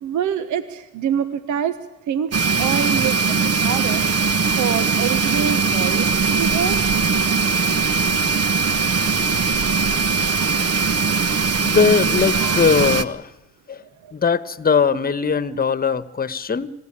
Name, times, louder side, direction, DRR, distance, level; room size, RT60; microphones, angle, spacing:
voice 1, 0.0-1.8 2.1-3.4 3.6-4.0 4.6-7.0, right 8 dB, 75° right, 11 dB, 1.2 m, -26 dB
sound 1, 2.3-13.0, right 5 dB, 55° right, 1.4 m, -20 dB
voice 2, 11.6-13.2 13.7-13.8 14.1-16.7, left 5 dB, 30° left, 14 dB, 1.2 m, -20 dB
26.0 x 17.5 x 10.0 m, 0.96 s
cardioid pair, 90°, 30 cm